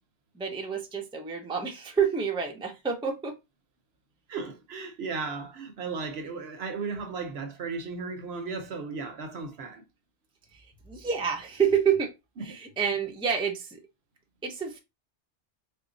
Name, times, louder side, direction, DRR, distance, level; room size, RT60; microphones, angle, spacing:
voice 1, 0.3-3.4 10.5-12.1 12.4-13.8 14.4-14.8, right 7 dB, 5° right, 0.5 m, -28 dB
voice 2, 4.3-9.8 12.4-12.6, right 4 dB, 65° right, 0.9 m, -35 dB
3.6 x 2.0 x 3.8 m
omnidirectional pair, 1.2 m